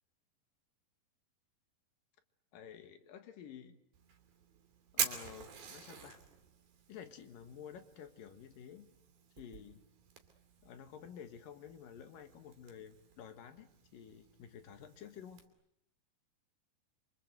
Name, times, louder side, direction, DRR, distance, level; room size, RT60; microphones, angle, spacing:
voice 1, 2.5-3.8 4.9-6.2 6.9-8.9 9.4-9.8 10.6-15.4, left 8 dB, 75° left, 9 dB, 3.2 m, -51 dB
Fire, 3.9-15.5, right 7 dB, 80° right, 4.6 m, -46 dB
27.0 x 25.0 x 8.0 m, 0.76 s
omnidirectional pair, 4.1 m